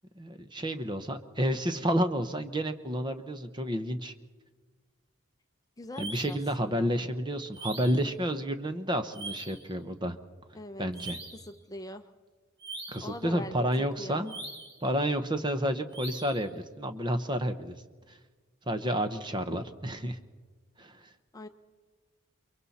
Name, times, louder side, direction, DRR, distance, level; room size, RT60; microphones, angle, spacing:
voice 1, 0.2-4.1 6.0-10.2 10.8-11.2 12.9-14.3 14.8-17.8 18.1-18.2 18.7-20.2 20.8-21.1, equal, 20° right, 8 dB, 0.9 m, -30 dB
voice 2, 5.8-6.9 10.5-10.9 11.4-12.1 13.0-14.3 21.3-21.5, left 1 dB, 15° left, 7 dB, 0.7 m, -42 dB
sound 1, 5.9-6.5 7.5-8.1 9.1-9.7 10.9-11.5 12.6-13.2 14.3-14.8 15.9-16.5, right 3 dB, 55° right, 3.5 m, -42 dB
29.5 x 23.0 x 4.2 m, 1.4 s
head